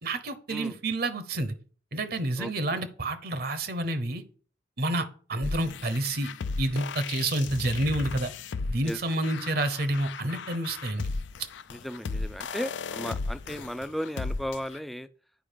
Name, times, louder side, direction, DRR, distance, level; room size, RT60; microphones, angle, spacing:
voice 1, 0.0-1.5 1.9-4.2 4.8-6.3 6.6-8.3 8.7-11.1, right 1 dB, 55° right, 12 dB, 0.8 m, -29 dB
voice 2, 2.4-2.8 8.8-9.0 11.7-15.1, equal, ahead, 13 dB, 0.3 m, -35 dB
sound 1, 5.4-14.8, left 4 dB, 80° left, 0.5 m, -35 dB
9.2 x 4.8 x 5.0 m, 0.41 s
head